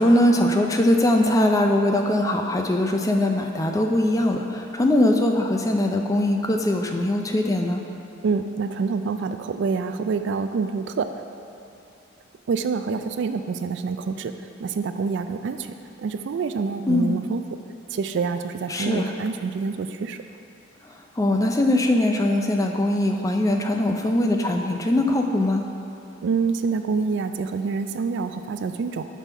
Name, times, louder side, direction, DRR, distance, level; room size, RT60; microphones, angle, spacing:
voice 1, 0.0-7.8 16.9-17.2 18.7-19.1 21.2-25.6, left 1 dB, 15° left, 3 dB, 0.4 m, -21 dB
voice 2, 8.2-11.1 12.5-14.3 14.6-15.7 16.0-17.4 17.9-20.2 26.2-29.1, right 5 dB, 60° right, 8 dB, 0.3 m, -26 dB
6.2 x 5.3 x 5.5 m, 2.7 s
head